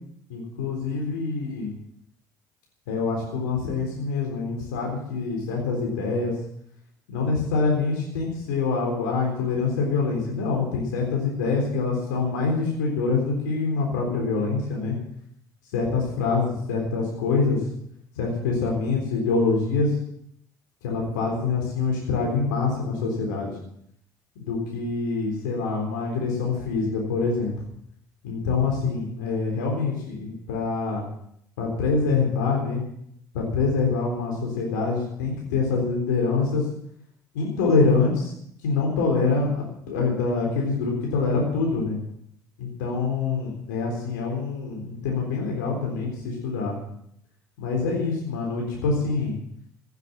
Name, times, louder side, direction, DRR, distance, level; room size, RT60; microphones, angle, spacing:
voice 1, 0.3-1.7 2.9-6.3 7.1-14.9 15.7-17.6 18.2-19.9 20.8-23.5 24.4-27.5 28.2-31.0 31.6-32.8 33.3-36.6 37.3-38.3 38.6-42.0 42.6-46.8 47.6-49.3, left 4 dB, 80° left, -1 dB, 3.9 m, -25 dB
16.5 x 8.1 x 8.6 m, 0.71 s
hypercardioid pair, 55°, 10 cm